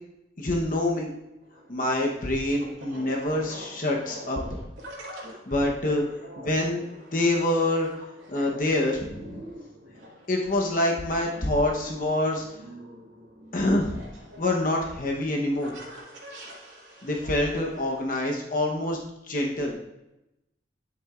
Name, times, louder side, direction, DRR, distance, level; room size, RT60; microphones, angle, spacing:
voice 1, 0.4-1.1 1.7-4.4 5.3-6.0 6.4-6.8 7.1-7.9 8.3-9.4 10.3-12.5 13.5-14.0 14.4-15.7 17.0-19.0 19.3-19.9, left 1 dB, 45° left, 0 dB, 0.9 m, -26 dB
sound 1, 1.4-18.0, equal, 90° right, 2.2 m, -45 dB
9.8 x 7.8 x 2.4 m, 0.92 s
head